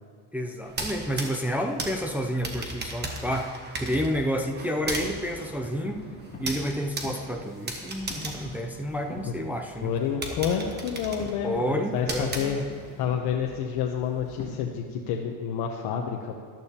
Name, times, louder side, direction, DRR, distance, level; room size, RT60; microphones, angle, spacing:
voice 1, 0.3-3.5 3.8-6.0 6.4-9.9 11.4-12.6, equal, 5° right, 2 dB, 0.3 m, -30 dB
sound 1, 0.6-9.4 9.8-9.9 10.2-13.0, right 2 dB, 25° right, 1.2 m, -36 dB
sound 2, 4.3-14.6, left 3 dB, 25° left, 2.8 m, -46 dB
voice 2, 9.8-12.6 13.0-16.3, left 8 dB, 70° left, 1 dB, 0.9 m, -29 dB
13.5 x 12.0 x 2.9 m, 2.3 s
cardioid pair, 160°, 40 cm